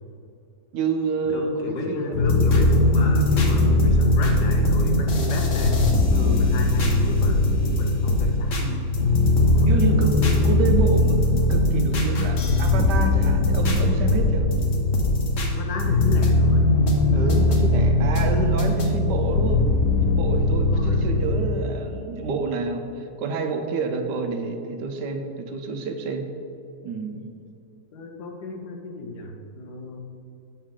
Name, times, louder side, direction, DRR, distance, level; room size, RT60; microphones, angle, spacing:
voice 1, 0.7-2.2 6.1-6.5 8.6-8.8 9.7-14.5 17.1-19.7 20.0-26.3 26.8-27.2, right 4 dB, 70° right, 5 dB, 1.2 m, -29 dB
voice 2, 1.3-8.6 9.4-9.8 15.5-16.7 17.3-17.7 18.3-18.7 20.7-21.0 27.9-30.0, left 1 dB, 65° left, 2 dB, 1.3 m, -33 dB
sound 1, 2.1-21.4, left 2 dB, 50° left, 1.1 m, -20 dB
7.2 x 6.4 x 3.8 m, 2.6 s
omnidirectional pair, 2.0 m